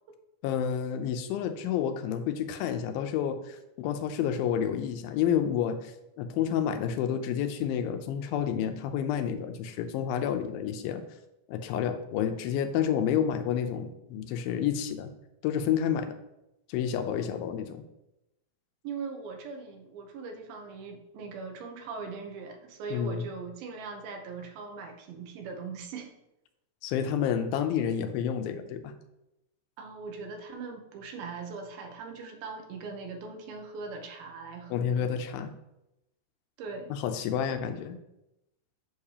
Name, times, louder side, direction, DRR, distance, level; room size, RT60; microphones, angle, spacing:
voice 1, 0.4-5.9 6.2-11.0 11.5-15.1 15.4-16.1 16.7-17.8 22.9-23.2 26.8-29.0 34.7-35.5 36.9-38.0, left 8 dB, 90° left, 8 dB, 2.4 m, -29 dB
voice 2, 17.1-17.5 18.8-26.1 29.8-35.0 36.6-36.9, right 4 dB, 85° right, 4 dB, 2.8 m, -40 dB
8.0 x 6.6 x 2.8 m, 0.89 s
omnidirectional pair, 4.2 m